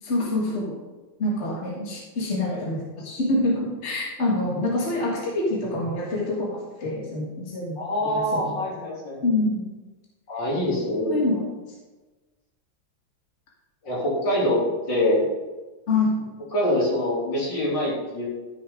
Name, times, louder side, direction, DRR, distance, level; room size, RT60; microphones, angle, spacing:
voice 1, 0.0-0.8 1.2-7.8 8.1-8.6 9.2-9.6 11.1-11.4 15.9-16.3, left 2 dB, 35° left, -4 dB, 2.0 m, -26 dB
voice 2, 7.8-9.3 10.3-11.2 13.8-14.6 14.9-15.2 16.5-18.3, left 1 dB, 60° left, -5 dB, 3.7 m, -25 dB
13.0 x 7.1 x 3.7 m, 1.2 s
omnidirectional pair, 2.2 m